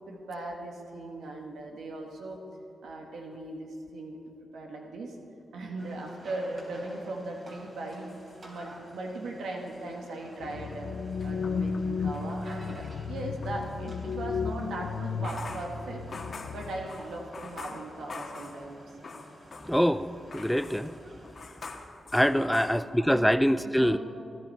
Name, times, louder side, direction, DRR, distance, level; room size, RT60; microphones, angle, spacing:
voice 1, 0.1-2.4 2.8-5.2 5.5-8.1 8.4-10.9 11.2-16.0 16.5-19.0 22.2-23.3 23.6-24.0, right 2 dB, 85° right, 1 dB, 1.3 m, -39 dB
sound 1, 5.8-21.4, right 1 dB, 50° right, 3.6 m, -51 dB
sound 2, 7.9-9.1 9.4-13.6 15.0-19.9 20.3-23.2, left 3 dB, 55° left, 1.4 m, -45 dB
sound 3, 10.4-16.8, left 5 dB, 85° left, 0.5 m, -34 dB
voice 2, 19.7-20.9 22.1-24.0, equal, 5° left, 13 dB, 0.4 m, -24 dB
16.5 x 12.0 x 4.6 m, 2.6 s
cardioid pair, 60°, 0 cm